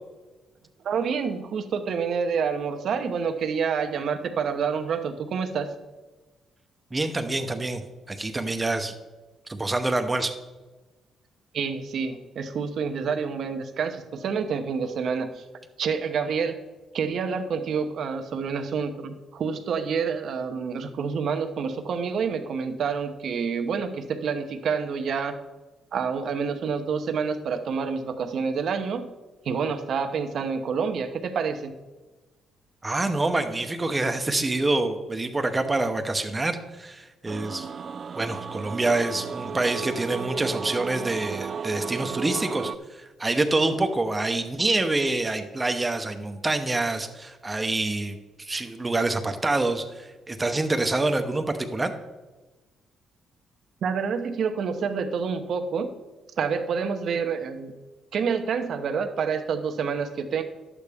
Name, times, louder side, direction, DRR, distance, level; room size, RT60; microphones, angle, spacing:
voice 1, 0.8-5.7 11.5-15.4 15.8-16.6 16.9-25.4 25.9-29.1 29.4-31.7 53.8-55.9 56.4-57.7 58.1-60.4, right 6 dB, 65° right, 7 dB, 0.9 m, -28 dB
voice 2, 6.9-7.8 8.1-8.9 9.5-10.3 32.8-37.7 38.1-51.9, right 2 dB, 20° right, 7 dB, 0.8 m, -26 dB
sound 1, 37.3-42.8, right 6 dB, 50° right, 0.3 m, -34 dB
11.0 x 8.4 x 3.5 m, 1.2 s
cardioid pair, 90°, 0 cm